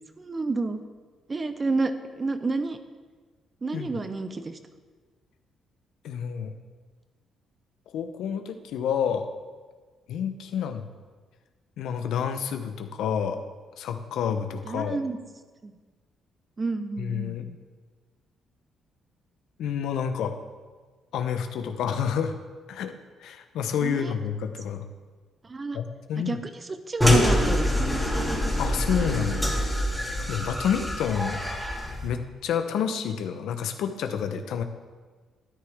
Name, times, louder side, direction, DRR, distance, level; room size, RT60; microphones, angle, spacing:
voice 1, 0.2-0.8 1.3-2.8 3.6-4.6 14.7-15.2 15.6-15.7 16.6-17.6 23.8-24.1 25.4-25.8 26.3-28.2, right 3 dB, 30° right, 9 dB, 0.9 m, -30 dB
voice 2, 6.0-6.5 7.9-9.3 10.1-10.9 11.8-13.4 13.8-15.0 17.0-17.5 19.6-20.4 21.1-22.3 22.7-22.9 23.2-24.9 25.7-26.4 28.6-29.5 30.3-31.4 32.0-34.6, left 8 dB, 80° left, 7 dB, 0.8 m, -29 dB
sound 1, 27.0-32.1, left 1 dB, ahead, 2.6 m, -25 dB
13.0 x 10.0 x 3.6 m, 1.4 s
cardioid pair, 90°, 0 cm